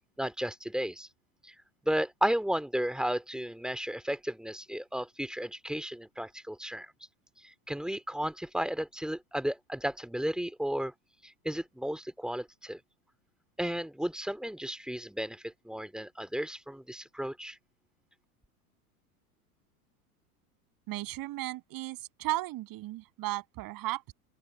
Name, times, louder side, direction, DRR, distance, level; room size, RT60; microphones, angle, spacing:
voice 1, 0.2-1.1 1.4-1.5 1.8-6.9 7.7-10.9 11.2-12.8 13.6-17.6, equal, ahead, 2.8 m, -33 dB
voice 2, 20.9-24.1, right 18 dB, 45° right, 7.4 m, -35 dB
open air
hypercardioid pair, 90°, 46 cm